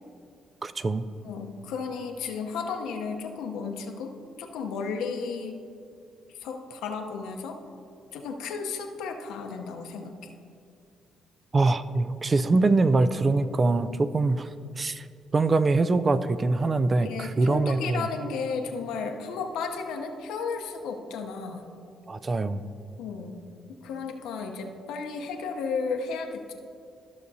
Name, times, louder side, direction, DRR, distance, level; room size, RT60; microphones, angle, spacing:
voice 1, 0.6-1.1 11.5-14.5 14.8-15.0 15.3-18.1 22.1-22.7, right 3 dB, 30° right, 13 dB, 0.3 m, -23 dB
voice 2, 1.2-4.1 4.4-5.6 6.3-7.6 8.1-10.3 16.9-21.7 23.0-23.4 23.8-26.5, left 5 dB, 90° left, 3 dB, 0.7 m, -34 dB
14.0 x 6.5 x 2.7 m, 2.5 s
cardioid pair, 90°, 0 cm